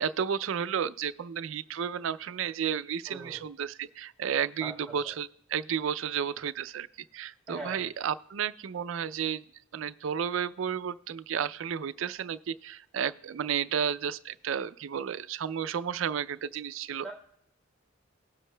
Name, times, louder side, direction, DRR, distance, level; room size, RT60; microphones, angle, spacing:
voice 1, 0.0-6.9 7.1-9.4 9.7-17.1, right 8 dB, 70° right, 15 dB, 0.4 m, -32 dB
voice 2, 3.1-3.4 4.6-5.1 7.5-7.9 17.0-17.1, right 2 dB, 5° left, -3 dB, 1.6 m, -41 dB
19.5 x 7.2 x 2.2 m, 0.77 s
head